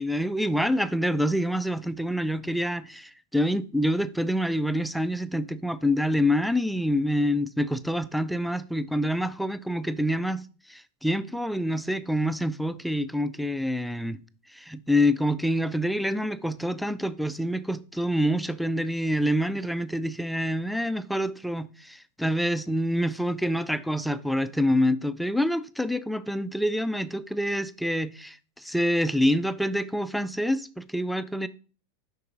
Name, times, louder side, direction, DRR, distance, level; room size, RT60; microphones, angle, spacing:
voice 1, 0.0-10.4 10.7-14.2 14.5-31.5, equal, ahead, 0.4 m, -26 dB
6.6 x 5.4 x 3.8 m
figure-of-eight pair, 90°, 0 cm